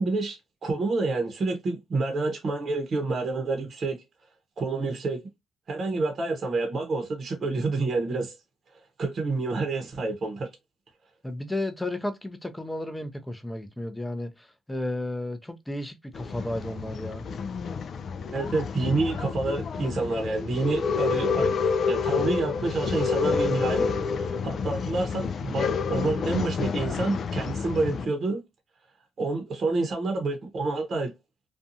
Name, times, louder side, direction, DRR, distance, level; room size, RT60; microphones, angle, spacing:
voice 1, 0.0-4.0 4.6-5.2 5.7-8.4 8.7-10.5 18.3-21.5 21.9-28.4 29.2-31.1, right 3 dB, 50° right, 0.8 m, -28 dB
voice 2, 11.2-17.3, left 1 dB, 10° left, 0.6 m, -33 dB
Male speech man speaking / Chatter / Rattle, 16.1-28.1, left 5 dB, 55° left, 0.3 m, -29 dB
2.6 x 2.3 x 2.7 m
cardioid pair, 90°, 0 cm